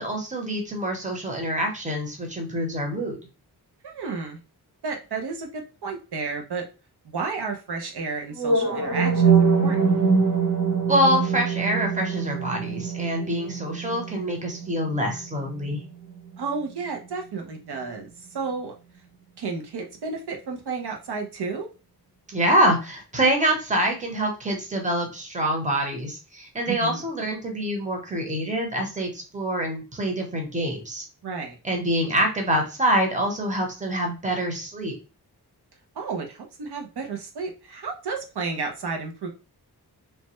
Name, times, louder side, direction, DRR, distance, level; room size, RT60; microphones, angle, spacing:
voice 1, 0.0-3.2 10.9-15.8 22.3-31.0 31.6-34.9, equal, 20° right, 1 dB, 0.8 m, -25 dB
voice 2, 3.8-4.4 4.8-6.6 7.0-9.9 16.4-18.7 19.4-21.7 26.7-27.0 31.2-31.6 35.9-39.3, right 4 dB, 75° right, 3 dB, 0.7 m, -32 dB
sound 1, 8.4-16.4, right 5 dB, 50° right, 1.1 m, -24 dB
3.2 x 2.1 x 3.0 m, 0.32 s
wide cardioid pair, 105°, 39 cm